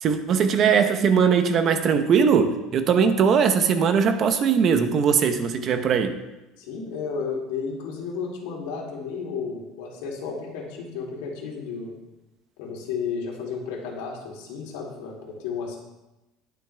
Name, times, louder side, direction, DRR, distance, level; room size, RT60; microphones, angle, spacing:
voice 1, 0.0-6.2, right 6 dB, 30° right, 8 dB, 0.8 m, -20 dB
voice 2, 6.6-11.9 12.6-15.8, left 5 dB, 85° left, -2 dB, 3.3 m, -33 dB
20.5 x 6.9 x 3.4 m, 0.99 s
cardioid pair, 180°, 0 cm